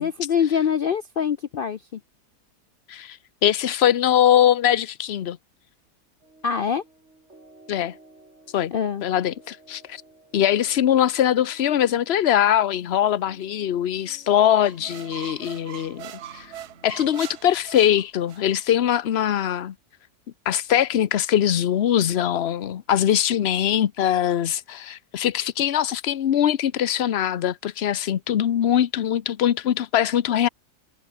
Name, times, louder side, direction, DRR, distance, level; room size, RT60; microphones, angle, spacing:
voice 1, 0.0-2.0 6.4-6.8 8.7-9.0, left 7 dB, 70° left, 0.5 m, -24 dB
voice 2, 2.9-5.4 7.7-7.9 8.5-8.7 9.0-10.0 10.3-16.5 16.8-19.7 20.5-30.5, left 10 dB, 50° left, 0.9 m, -22 dB
sound 1, 6.2-17.0, right 2 dB, 45° right, 5.3 m, -54 dB
sound 2, 14.6-18.6, right 10 dB, 80° right, 1.5 m, -41 dB
omnidirectional pair, 1.7 m